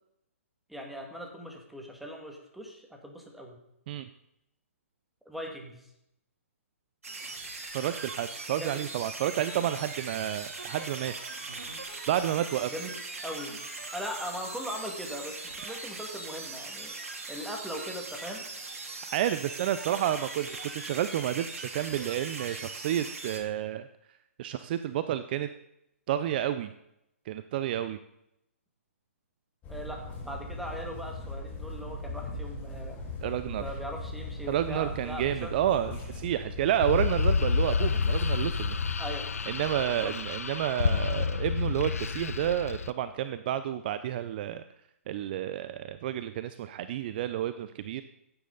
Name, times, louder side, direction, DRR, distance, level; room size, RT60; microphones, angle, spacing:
voice 1, 0.7-3.6 5.3-5.8 8.6-8.8 12.7-12.9 13.2-13.6 13.9-16.9 17.3-18.4 29.7-33.0 33.6-35.5 39.0-39.3 39.9-40.1, equal, ahead, 1 dB, 2.2 m, -40 dB
sound 1, 7.0-23.4, right 3 dB, 75° right, 3.5 m, -40 dB
voice 2, 7.7-11.1 12.1-12.7 19.1-23.9 24.4-25.5 26.1-26.7 27.3-28.0 33.2-33.6 34.5-38.8 39.5-44.6 45.1-48.0, right 11 dB, 40° right, 12 dB, 0.6 m, -30 dB
sound 2, 29.6-38.9, left 2 dB, 20° left, 4.3 m, -39 dB
sound 3, 36.8-42.9, left 5 dB, 80° left, 0.7 m, -29 dB
16.0 x 9.5 x 4.1 m, 0.80 s
hypercardioid pair, 135°, 8 cm